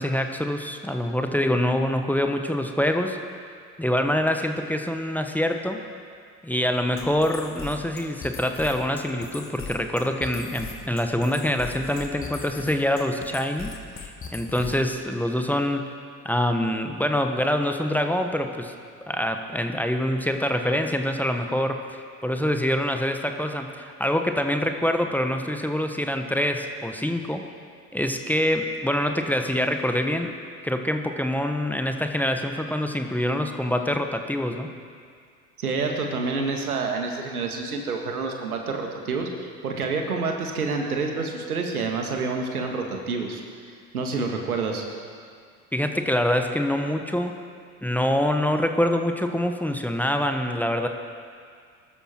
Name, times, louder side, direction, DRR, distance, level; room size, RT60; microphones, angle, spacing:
voice 1, 0.0-3.2 3.8-5.8 6.4-13.7 14.0-15.9 16.2-18.7 19.0-27.5 27.9-30.3 30.6-34.7 45.7-47.3 47.8-50.9, left 1 dB, 5° left, 5 dB, 1.2 m, -25 dB
sound 1, 7.0-15.0, left 5 dB, 30° left, 2.3 m, -39 dB
voice 2, 35.6-43.4 43.7-44.8, right 4 dB, 85° right, 2 dB, 1.9 m, -28 dB
21.5 x 13.0 x 4.6 m, 2.1 s
figure-of-eight pair, 70°, 43 cm